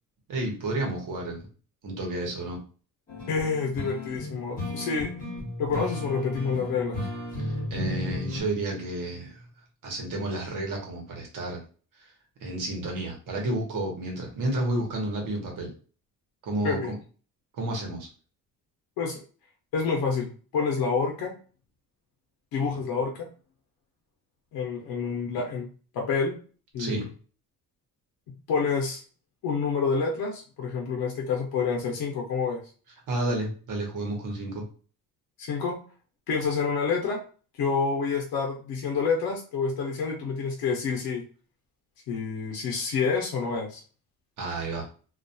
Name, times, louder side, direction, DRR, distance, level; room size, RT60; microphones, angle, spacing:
voice 1, 0.3-1.5 1.8-2.6 7.4-9.4 9.8-11.6 12.4-15.7 16.4-17.0 17.6-18.1 26.8-27.1 33.1-34.7 44.4-44.9, right 2 dB, 65° right, 1 dB, 0.9 m, -31 dB
sound 1, 3.1-8.4, left 2 dB, 25° left, 1.1 m, -34 dB
voice 2, 3.3-5.1 5.6-7.0 16.6-16.9 19.0-19.2 19.7-21.3 22.5-23.3 24.5-25.7 25.9-26.3 26.7-27.1 28.5-29.0 29.4-32.6 35.4-35.8 36.3-37.2 37.6-41.2 42.1-43.8, left 5 dB, 90° left, 1 dB, 0.6 m, -28 dB
2.3 x 2.2 x 2.6 m, 0.39 s
cardioid pair, 150°, 35 cm